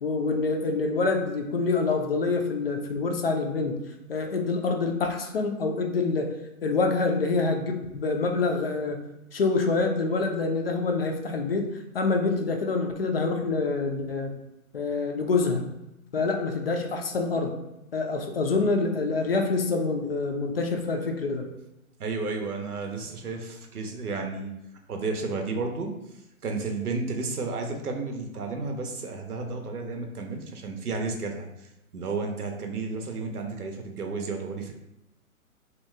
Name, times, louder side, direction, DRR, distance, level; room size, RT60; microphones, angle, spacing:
voice 1, 0.0-3.8 4.1-6.3 6.6-9.0 9.3-14.3 14.7-15.6 16.1-17.5 17.9-21.5, left 3 dB, 45° left, 3 dB, 0.4 m, -26 dB
voice 2, 22.0-24.5 24.9-25.9 26.4-34.7, right 3 dB, 85° right, 3 dB, 0.8 m, -32 dB
2.8 x 2.2 x 3.2 m, 0.87 s
figure-of-eight pair, 135°, 44 cm